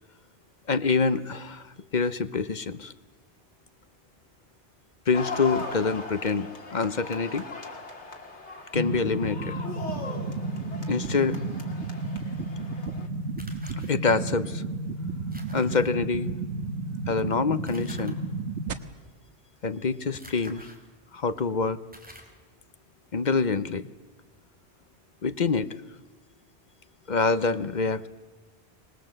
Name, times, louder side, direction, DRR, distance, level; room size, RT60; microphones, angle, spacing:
voice 1, 0.7-2.9 5.1-7.5 8.7-9.6 10.9-11.4 13.9-14.6 15.5-16.3 17.1-18.2 19.6-20.7 21.1-21.8 23.1-23.9 25.2-25.7 27.1-28.1, left 4 dB, 45° left, 13 dB, 0.9 m, -26 dB
sound 1, 5.1-13.1, left 4 dB, 85° left, 2.6 m, -39 dB
sound 2, 8.7-18.7, right 3 dB, 85° right, 1.5 m, -32 dB
sound 3, 13.4-13.9 15.3-15.9 17.7-18.1 20.1-20.8 21.4-21.5 21.9-22.4, equal, 10° right, 3.5 m, -48 dB
25.5 x 20.0 x 7.7 m, 1.3 s
omnidirectional pair, 1.1 m